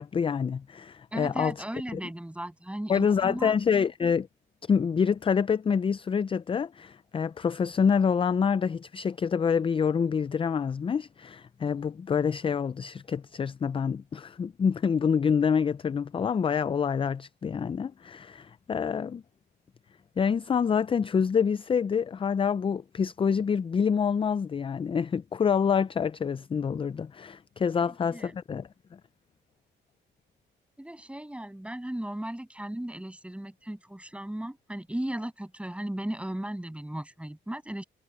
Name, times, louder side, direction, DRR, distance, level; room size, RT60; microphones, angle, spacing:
voice 1, 0.0-1.5 1.9-2.0 2.9-4.3 4.7-19.2 20.2-29.0, left 6 dB, 25° left, 0.4 m, -27 dB
voice 2, 1.1-3.5 27.8-28.4 30.8-37.8, right 1 dB, 5° right, 7.2 m, -36 dB
cardioid pair, 90°, 20 cm